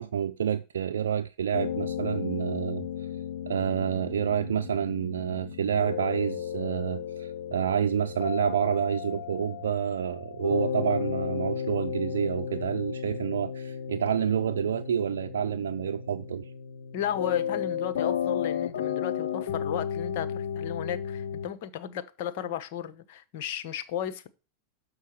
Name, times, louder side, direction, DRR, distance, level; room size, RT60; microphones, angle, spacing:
voice 1, 0.0-2.9 3.5-16.5, right 8 dB, 85° right, 0.5 m, -28 dB
sound 1, 1.5-21.5, left 8 dB, 80° left, 0.8 m, -34 dB
voice 2, 16.9-24.3, left 10 dB, 60° left, 1.1 m, -34 dB
6.7 x 4.6 x 6.5 m
hypercardioid pair, 110°, 0 cm